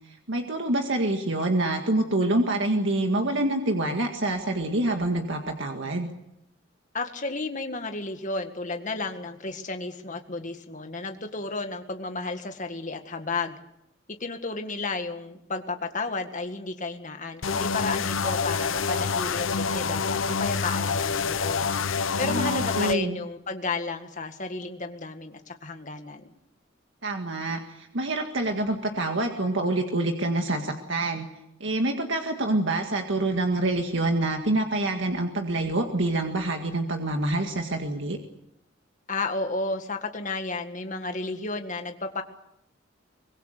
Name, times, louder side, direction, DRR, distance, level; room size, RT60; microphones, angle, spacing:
voice 1, 0.3-6.1 22.2-23.2 27.0-31.3 31.6-38.2, right 2 dB, 65° right, 3 dB, 1.9 m, -26 dB
voice 2, 6.9-13.6 14.2-21.7 22.2-26.3 39.1-42.2, left 3 dB, 40° left, 6 dB, 1.9 m, -32 dB
sound 1, 17.4-22.9, left 5 dB, 80° left, 0.8 m, -27 dB
24.5 x 21.0 x 6.7 m, 0.81 s
head